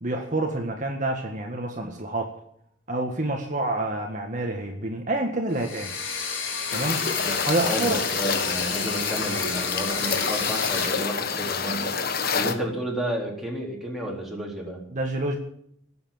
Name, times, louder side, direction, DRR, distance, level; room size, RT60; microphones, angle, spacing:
voice 1, 0.0-2.3 2.9-5.9 6.7-7.0 7.4-8.0 14.9-15.4, right 2 dB, 40° right, 2 dB, 1.8 m, -28 dB
sound 1, 5.5-11.1, left 5 dB, 80° left, 4.7 m, -31 dB
sound 2, 6.7-12.5, left 6 dB, 50° left, 1.4 m, -28 dB
voice 2, 7.2-12.0 12.3-14.8, right 1 dB, ahead, -2 dB, 4.1 m, -31 dB
19.5 x 8.0 x 9.3 m, 0.70 s
head